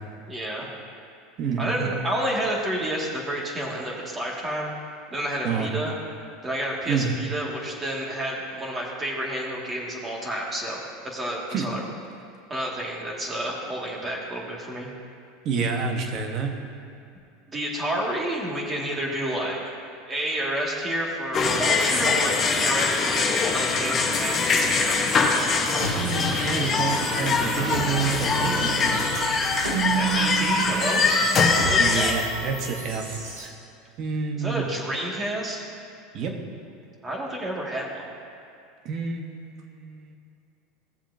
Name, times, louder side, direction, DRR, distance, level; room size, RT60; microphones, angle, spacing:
voice 1, 0.3-0.7 1.6-4.7 5.1-5.9 6.4-11.8 12.5-14.9 17.5-19.6 20.1-25.0 29.6-31.0 31.6-31.9 34.4-35.7 37.0-38.0, right 1 dB, 20° right, -3 dB, 2.2 m, -30 dB
voice 2, 1.4-2.0 5.4-5.7 6.9-7.1 11.5-11.7 15.4-16.5 25.9-29.3 31.8-33.5 34.0-34.7 36.1-36.3 38.8-40.2, right 5 dB, 50° right, 3 dB, 1.3 m, -29 dB
sound 1, 21.3-32.1, left 4 dB, 35° left, 1.2 m, -23 dB
sound 2, 25.8-33.4, right 5 dB, 90° right, 2.3 m, -31 dB
16.0 x 7.2 x 2.8 m, 2.5 s
hypercardioid pair, 95°, 0 cm